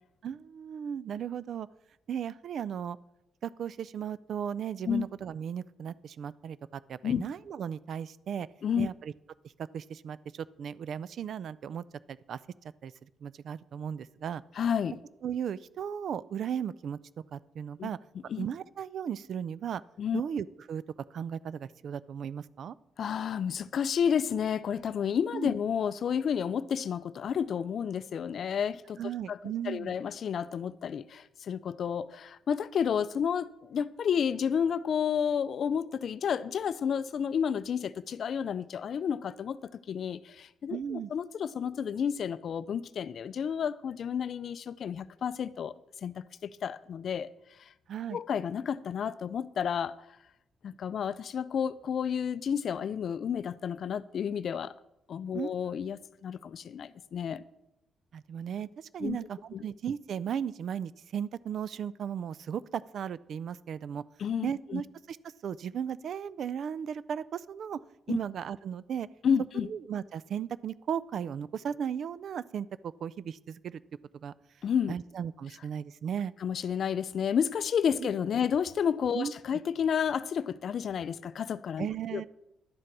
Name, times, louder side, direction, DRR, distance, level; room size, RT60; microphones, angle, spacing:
voice 1, 0.2-1.7 2.1-3.0 3.4-8.5 8.8-9.1 9.7-12.4 12.8-12.9 13.2-14.4 15.2-17.0 17.3-18.0 18.4-19.8 20.1-20.8 21.1-22.7 25.3-25.5 29.0-29.9 40.7-41.1 47.9-48.2 55.3-55.7 58.1-64.0 64.4-65.2 65.4-67.8 68.1-69.1 69.5-73.8 74.1-74.3 74.9-76.3 78.0-78.1 79.1-79.3 81.8-82.3, right 8 dB, 60° right, 0.3 m, -36 dB
voice 2, 14.6-15.0 17.8-17.9 18.3-18.5 20.0-20.2 23.0-29.0 29.3-29.4 29.6-45.7 46.0-47.3 47.6-47.7 48.1-50.0 50.6-54.7 55.1-57.4 59.0-59.2 59.5-59.6 64.2-64.8 68.1-68.2 69.2-69.7 74.6-74.9 76.4-82.3, left 7 dB, 55° left, 0.4 m, -31 dB
11.5 x 7.6 x 4.6 m
cardioid pair, 130°, 0 cm